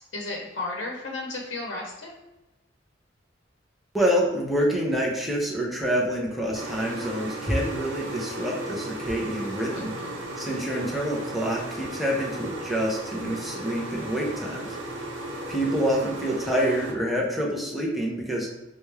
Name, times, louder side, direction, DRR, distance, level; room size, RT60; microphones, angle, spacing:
voice 1, 0.1-2.2 9.7-10.2 15.9-16.1, left 2 dB, 85° left, -2 dB, 0.7 m, -34 dB
voice 2, 3.9-9.9 10.4-14.8 15.5-18.5, equal, ahead, -3 dB, 0.7 m, -27 dB
sound 1, 6.5-16.9, right 1 dB, 85° right, 0.8 m, -35 dB
4.1 x 2.3 x 3.2 m, 1.0 s
head